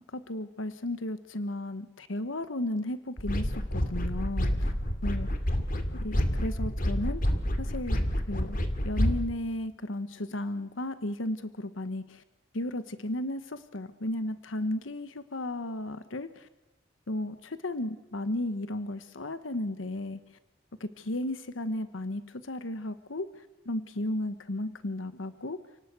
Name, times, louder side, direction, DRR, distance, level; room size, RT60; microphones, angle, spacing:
voice 1, 0.1-4.7 5.0-5.5 6.0-7.2 7.6-8.0 8.3-8.6 8.8-12.2 12.5-16.5 17.1-20.2 20.8-25.6, left 1 dB, 80° left, 12 dB, 1.2 m, -34 dB
sound 1, 3.2-9.2, equal, 45° left, 2.3 m, -28 dB
29.0 x 18.5 x 8.2 m, 0.97 s
head